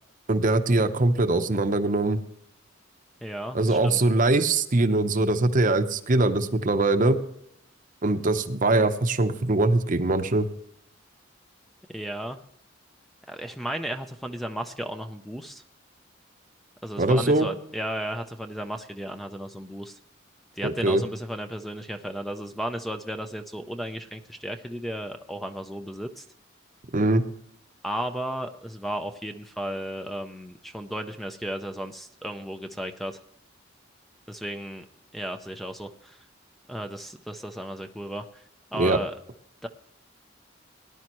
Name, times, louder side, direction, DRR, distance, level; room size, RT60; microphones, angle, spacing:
voice 1, 0.3-2.2 3.5-7.2 8.0-10.5 17.0-17.5 20.6-21.0 26.9-27.2 38.8-39.0, right 2 dB, 45° right, 9 dB, 0.8 m, -22 dB
voice 2, 3.2-4.0 11.9-12.4 13.3-15.6 16.8-20.0 20.5-26.2 27.8-33.2 34.3-34.8 35.1-36.2 36.7-38.4 38.7-39.1 39.6-39.7, right 1 dB, ahead, 6 dB, 0.5 m, -34 dB
18.5 x 10.5 x 3.1 m, 0.72 s
head